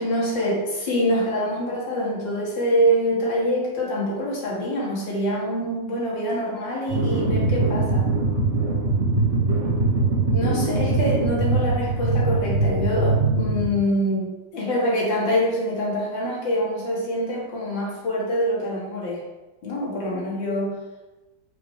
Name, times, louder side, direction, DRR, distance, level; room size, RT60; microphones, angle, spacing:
voice 1, 0.0-8.1 10.3-19.2 19.6-20.8, equal, 75° left, -4 dB, 2.6 m, -25 dB
sound 1, 6.9-13.7, right 3 dB, 35° right, 2.2 m, -22 dB
7.5 x 6.2 x 3.3 m, 1.1 s
omnidirectional pair, 2.0 m